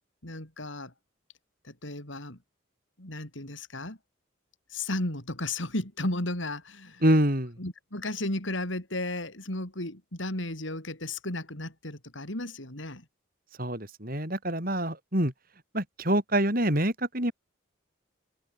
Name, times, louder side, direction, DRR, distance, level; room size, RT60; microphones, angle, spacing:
voice 1, 0.2-0.9 1.6-2.4 3.0-4.0 4.7-7.0 7.6-13.0, left 1 dB, 75° left, 6.0 m, -34 dB
voice 2, 7.0-7.6 13.6-15.3 15.7-17.3, right 1 dB, 45° right, 7.8 m, -26 dB
head